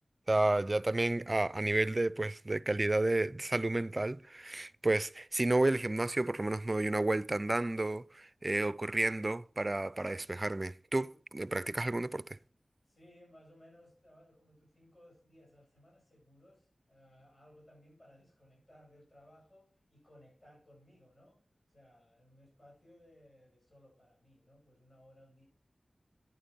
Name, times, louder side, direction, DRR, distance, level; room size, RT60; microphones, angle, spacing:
voice 1, 0.3-12.2, right 2 dB, 35° right, 0.5 m, -31 dB
voice 2, 12.8-21.4 21.7-25.5, equal, 40° left, 7.8 m, -61 dB
11.0 x 9.7 x 5.6 m
cardioid pair, 50°, 0 cm